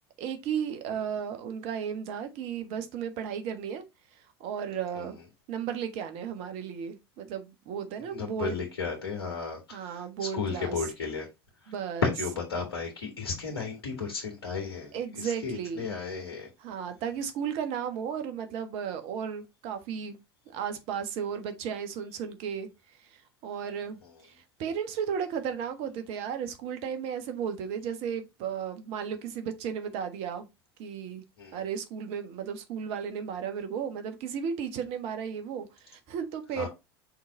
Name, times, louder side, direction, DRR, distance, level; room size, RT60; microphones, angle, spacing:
voice 1, 0.2-3.8 4.4-5.2 5.5-8.6 9.7-10.9 11.7-12.1 14.9-15.9 16.6-20.2 20.5-22.7 23.1-24.0 24.2-30.5 30.8-31.2 31.5-36.7, right 7 dB, 55° right, 1.4 m, -34 dB
voice 2, 8.1-11.3 12.0-16.5 31.4-31.6 36.6-36.7, left 5 dB, 75° left, 1.8 m, -34 dB
6.0 x 4.1 x 4.0 m
figure-of-eight pair, 75°, 13 cm